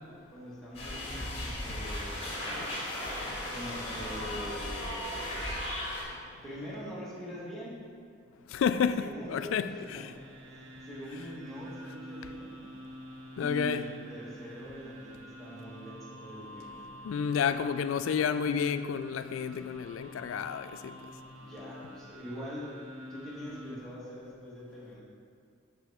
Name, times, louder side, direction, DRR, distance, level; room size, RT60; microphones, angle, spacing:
voice 1, 0.3-2.2 3.5-5.2 6.4-7.8 9.0-10.1 10.8-12.6 13.4-16.7 21.4-22.7 23.1-25.0, equal, ahead, 1.5 m, -43 dB
sound 1, 0.7-6.0, left 1 dB, 30° left, 1.9 m, -36 dB
voice 2, 8.5-10.1 13.4-13.9 17.0-20.9, left 7 dB, 85° left, 0.3 m, -30 dB
sound 2, 9.4-23.8, equal, 80° right, 0.8 m, -48 dB
7.5 x 6.6 x 3.5 m
head